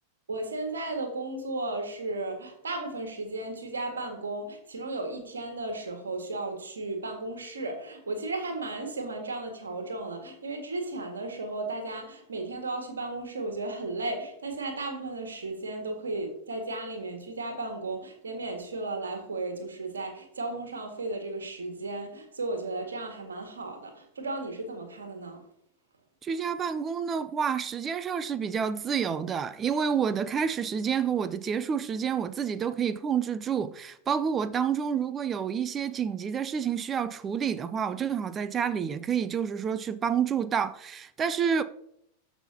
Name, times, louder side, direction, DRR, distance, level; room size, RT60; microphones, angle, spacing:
voice 1, 0.3-25.4, right 2 dB, 70° right, 1.8 m, -35 dB
voice 2, 26.2-41.6, right 7 dB, 25° right, 0.5 m, -29 dB
14.0 x 5.8 x 2.8 m
figure-of-eight pair, 90°, 0 cm